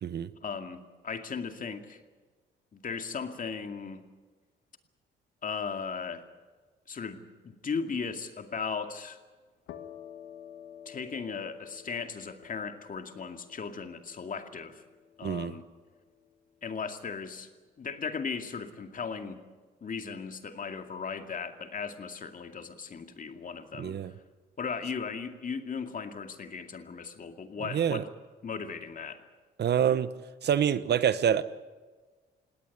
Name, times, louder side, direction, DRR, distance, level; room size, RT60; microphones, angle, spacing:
voice 1, 0.4-2.0 2.7-4.1 5.4-6.2 6.9-9.2 10.9-14.8 15.2-15.7 16.6-17.5 17.8-19.4 19.8-24.0 24.6-28.1 28.4-29.3, left 5 dB, 45° left, 6 dB, 2.3 m, -37 dB
sound 1, 9.7-17.1, left 9 dB, 85° left, 1.6 m, -51 dB
voice 2, 15.2-15.5 23.8-24.1 27.7-28.0 29.6-30.1 30.4-31.4, right 9 dB, 55° right, 14 dB, 1.0 m, -26 dB
20.0 x 17.5 x 9.6 m, 1.4 s
cardioid pair, 90°, 20 cm